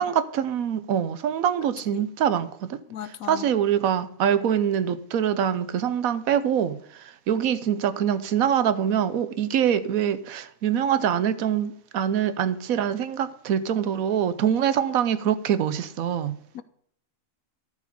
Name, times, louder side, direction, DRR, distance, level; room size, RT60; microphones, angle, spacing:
voice 1, 0.0-2.8 3.3-6.8 7.3-16.4, right 9 dB, 85° right, 1.2 m, -24 dB
voice 2, 2.9-3.5 16.5-16.6, left 10 dB, 85° left, 1.1 m, -36 dB
12.5 x 4.9 x 5.3 m
omnidirectional pair, 1.4 m